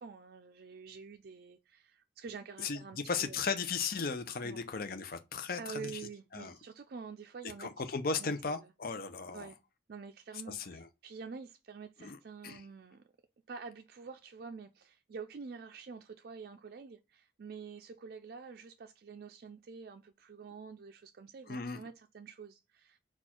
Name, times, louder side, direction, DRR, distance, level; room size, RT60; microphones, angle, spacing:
voice 1, 0.0-3.5 4.4-4.6 5.6-7.7 8.2-8.7 9.3-9.6 9.9-13.0 13.5-23.0, right 5 dB, 55° right, 0.4 m, -47 dB
voice 2, 3.1-5.9 6.3-6.5 7.6-9.5 10.5-10.9 12.0-12.2 12.4-12.6 21.5-21.8, left 5 dB, 50° left, 0.6 m, -36 dB
4.4 x 2.3 x 4.3 m
head